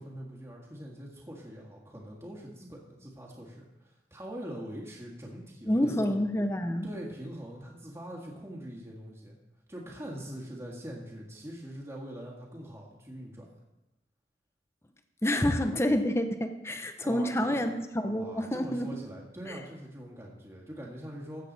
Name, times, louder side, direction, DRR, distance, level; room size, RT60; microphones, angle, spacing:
voice 1, 0.0-6.1 6.8-9.4 9.7-13.5 17.0-17.8 18.0-21.5, equal, 15° right, -2 dB, 1.7 m, -43 dB
voice 2, 5.7-6.9 15.2-18.9 19.5-19.6, left 1 dB, 15° left, 8 dB, 0.7 m, -28 dB
14.0 x 8.1 x 4.0 m, 0.96 s
head